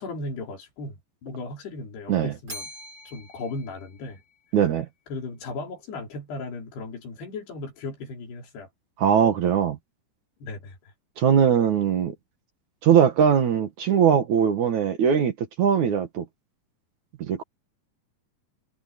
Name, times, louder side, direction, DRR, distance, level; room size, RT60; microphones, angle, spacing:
voice 1, 0.0-2.7 3.1-4.2 5.1-8.7 10.4-10.8, left 3 dB, 85° left, 6.6 m, -36 dB
Bell, 2.5-4.7, equal, 25° right, 5.8 m, -44 dB
voice 2, 4.5-4.9 9.0-9.8 11.2-12.1 12.8-16.2 17.3-17.4, right 8 dB, 55° right, 2.6 m, -20 dB
omnidirectional pair, 4.6 m